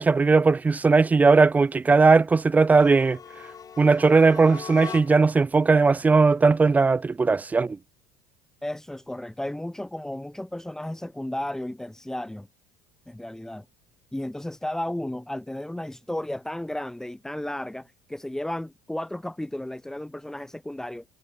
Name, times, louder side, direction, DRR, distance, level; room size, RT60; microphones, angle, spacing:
voice 1, 0.0-3.2 3.8-7.8, right 4 dB, 10° right, 0.3 m, -18 dB
sound 1, 2.7-5.4, left 7 dB, 30° left, 2.2 m, -40 dB
voice 2, 8.6-12.5 13.1-13.6 14.1-21.0, left 1 dB, 5° left, 1.5 m, -33 dB
supercardioid pair, 125°, 13 cm